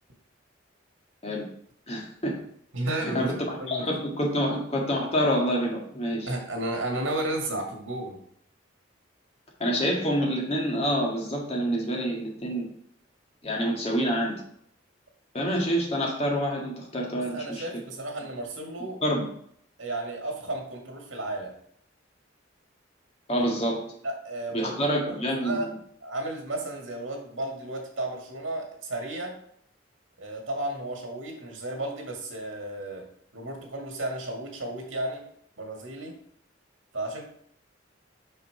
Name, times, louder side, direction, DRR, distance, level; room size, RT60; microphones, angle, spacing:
voice 1, 1.9-2.4 3.0-6.3 9.6-12.7 13.4-14.4 15.3-17.6 19.0-19.3 23.3-23.8 24.5-25.7, equal, 30° left, -1 dB, 1.8 m, -27 dB
voice 2, 2.7-3.8 6.3-8.2 17.2-19.0 19.8-21.5 24.0-24.7 25.1-25.2 25.4-25.7 26.0-29.3 30.2-33.0 33.3-35.2 35.6-36.2 36.9-37.2, right 1 dB, 85° right, 2 dB, 2.1 m, -33 dB
5.6 x 5.5 x 4.8 m, 0.67 s
head